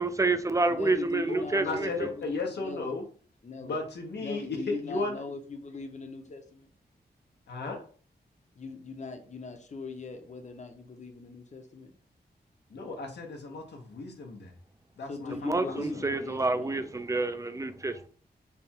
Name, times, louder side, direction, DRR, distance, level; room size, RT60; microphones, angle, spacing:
voice 1, 0.0-2.1 15.4-18.1, right 3 dB, 20° right, 0.4 m, -28 dB
voice 2, 0.7-2.9 3.4-3.8 4.2-6.7 8.6-11.9 15.1-16.8, left 4 dB, 45° left, 0.7 m, -40 dB
voice 3, 1.3-3.0 3.6-5.2 7.5-7.8 12.7-14.5 15.0-16.0, left 3 dB, 85° left, 0.9 m, -35 dB
3.4 x 2.3 x 4.3 m
wide cardioid pair, 85°, 17 cm